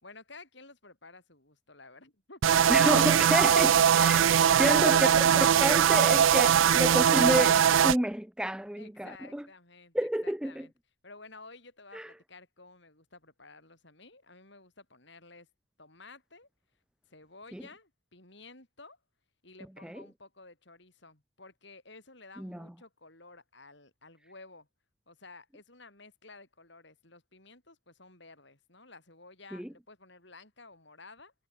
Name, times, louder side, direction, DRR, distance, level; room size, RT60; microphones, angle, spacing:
voice 1, 0.0-3.4 4.0-5.2 5.5-5.6 8.8-10.0 10.2-10.7 11.0-15.5 15.8-16.5 17.1-19.0 19.4-24.7 25.1-31.3, left 3 dB, 55° left, 5.6 m, -52 dB
sound 1, 2.4-8.0, right 8 dB, 70° right, 0.4 m, -21 dB
voice 2, 2.7-9.4 9.9-10.7 11.9-12.1 17.5-17.6 19.8-20.0 22.4-22.7 29.5-29.7, equal, 5° right, 0.5 m, -30 dB
head